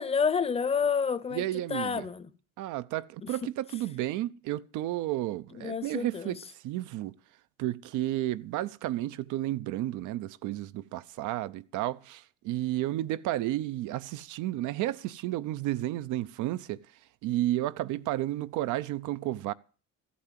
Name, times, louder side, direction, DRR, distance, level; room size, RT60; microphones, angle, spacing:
voice 1, 0.0-1.4 1.7-2.3 3.2-3.3 5.6-6.4, left 6 dB, 20° left, 0.7 m, -29 dB
voice 2, 1.3-2.1 2.6-6.4 6.6-7.1 7.6-16.8 17.2-19.5, right 15 dB, 90° right, 0.7 m, -32 dB
14.0 x 8.4 x 7.5 m
cardioid pair, 155°, 30 cm